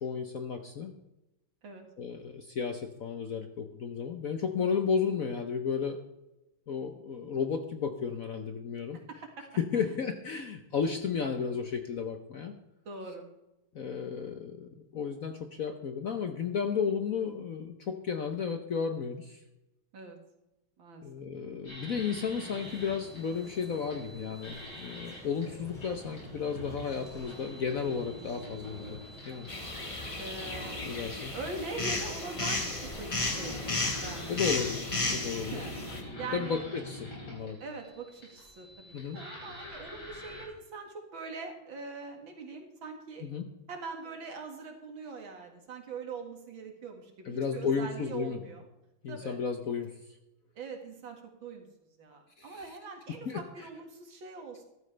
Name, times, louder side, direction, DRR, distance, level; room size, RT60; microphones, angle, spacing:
voice 1, 0.0-0.9 2.0-6.0 6.7-9.0 9.6-12.6 13.7-19.4 21.0-29.0 29.2-29.5 30.8-31.3 34.3-35.6 36.3-37.6 38.9-39.2 43.2-43.5 47.2-48.4 49.0-49.9 52.4-52.8 53.3-53.4, left 6 dB, 55° left, 6 dB, 1.0 m, -33 dB
voice 2, 8.9-9.4 9.7-10.0 12.9-13.3 19.9-20.2 20.8-21.0 30.2-30.9 31.3-34.5 35.3-35.8 36.2-36.6 37.6-43.3 43.7-48.7 49.1-49.4 50.6-51.6 52.0-54.6, right 4 dB, 70° right, 3 dB, 2.6 m, -42 dB
sound 1, 21.7-40.5, left 1 dB, 75° left, 5.9 m, -46 dB
sound 2, 22.3-33.9, equal, ahead, 3.3 m, -50 dB
sound 3, 29.5-36.0, left 2 dB, 20° left, 1.1 m, -34 dB
14.5 x 13.0 x 3.3 m, 0.95 s
omnidirectional pair, 2.3 m